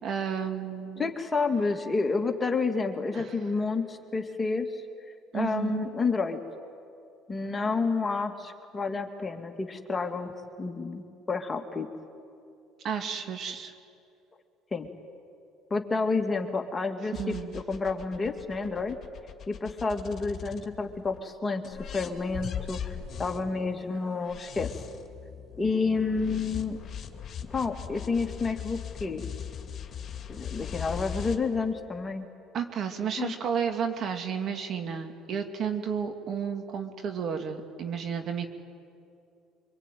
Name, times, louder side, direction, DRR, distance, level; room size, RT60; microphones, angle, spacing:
voice 1, 0.0-1.1 3.1-3.3 5.3-5.8 12.8-13.7 17.1-17.5 32.5-38.5, right 7 dB, 50° right, 5 dB, 2.6 m, -32 dB
voice 2, 1.0-4.8 5.3-6.4 7.3-10.3 10.6-11.9 14.7-14.9 15.7-19.0 19.5-22.8 23.2-24.7 25.6-26.8 27.5-29.3 30.3-32.2 33.2-33.3, left 4 dB, 25° left, 5 dB, 2.3 m, -29 dB
sound 1, 17.1-21.2 21.6-31.4, left 8 dB, 45° left, 2.4 m, -40 dB
24.5 x 24.0 x 9.3 m, 2.5 s
supercardioid pair, 75°, 0 cm